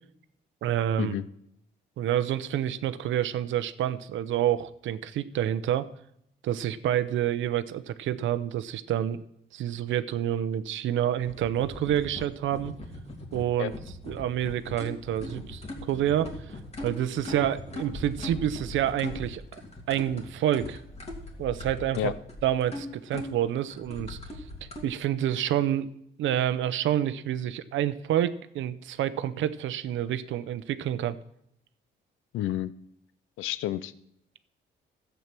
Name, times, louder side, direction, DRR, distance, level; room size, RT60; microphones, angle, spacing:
voice 1, 0.6-1.1 2.0-5.9 6.4-9.2 9.5-12.7 13.3-13.7 14.0-16.4 16.8-19.4 19.9-20.8 21.4-22.1 22.4-24.2 24.8-25.9 26.2-31.2, right 11 dB, 80° right, 13 dB, 0.8 m, -28 dB
sound 1, 11.2-24.8, left 1 dB, 35° left, 2.7 m, -40 dB
voice 2, 32.3-32.7 33.4-33.9, left 13 dB, 90° left, 16 dB, 0.5 m, -30 dB
12.5 x 8.2 x 6.0 m, 0.75 s
cardioid pair, 90°, 20 cm